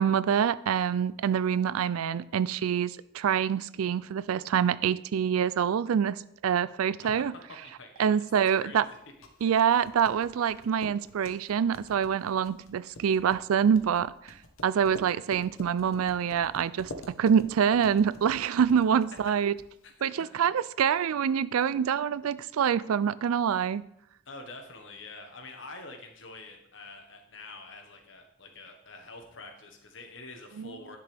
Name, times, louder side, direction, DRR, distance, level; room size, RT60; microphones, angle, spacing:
voice 1, 0.0-7.3 8.0-8.8 9.4-14.3 14.6-19.5 20.0-23.8 30.6-30.7, right 8 dB, 90° right, 18 dB, 0.4 m, -26 dB
voice 2, 7.0-9.0 9.4-9.7 20.2-20.3 24.2-31.0, left 3 dB, 60° left, 4 dB, 1.4 m, -46 dB
sound 1, 8.9-19.9, left 1 dB, 80° left, 1.1 m, -48 dB
10.5 x 6.8 x 3.4 m, 0.77 s
head